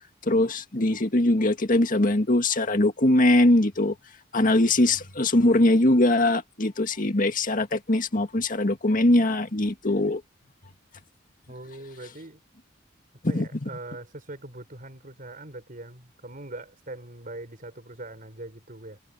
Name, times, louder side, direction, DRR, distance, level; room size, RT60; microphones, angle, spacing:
voice 1, 0.2-3.9 4.3-10.2 13.2-13.7, left 1 dB, 45° left, 2.0 m, -22 dB
voice 2, 11.5-12.4 13.3-19.0, right 2 dB, 45° right, 4.7 m, -41 dB
head